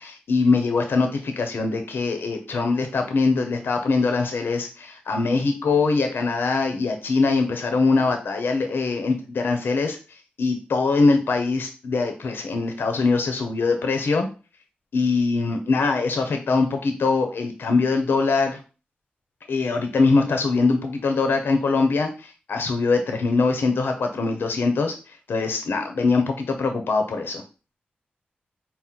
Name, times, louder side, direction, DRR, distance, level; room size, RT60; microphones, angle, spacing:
voice 1, 0.0-10.0 10.4-14.3 14.9-18.6 19.5-27.4, left 4 dB, 80° left, 5 dB, 0.6 m, -22 dB
4.3 x 2.0 x 3.7 m, 0.33 s
cardioid pair, 55°, 4 cm